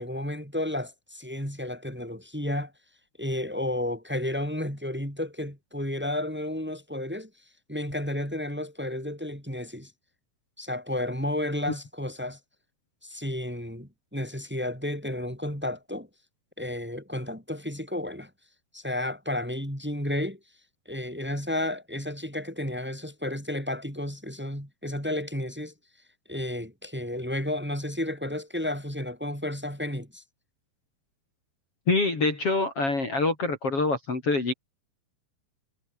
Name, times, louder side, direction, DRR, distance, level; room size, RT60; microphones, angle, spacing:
voice 1, 0.0-2.7 3.2-7.3 7.7-9.9 10.6-12.4 13.0-16.1 16.6-18.3 18.7-20.4 20.9-25.7 26.3-30.2, left 1 dB, 5° right, 6.0 m, -32 dB
voice 2, 31.9-34.5, left 3 dB, 40° left, 5.2 m, -25 dB
omnidirectional pair, 4.3 m